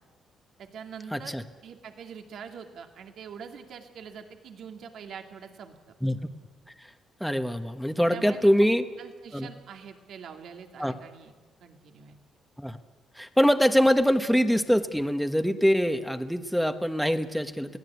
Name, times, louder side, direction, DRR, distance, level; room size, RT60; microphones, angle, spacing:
voice 1, 0.6-1.4 1.6-5.8 8.1-11.3 11.6-12.2, right 7 dB, 70° right, 5 dB, 2.3 m, -44 dB
voice 2, 1.1-1.4 6.0-6.2 6.8-6.9 7.2-8.8 9.3-9.5 10.8-10.9 12.6-12.8 13.1-17.8, equal, ahead, 7 dB, 1.3 m, -24 dB
22.5 x 16.0 x 8.3 m, 1.3 s
cardioid pair, 90°, 0 cm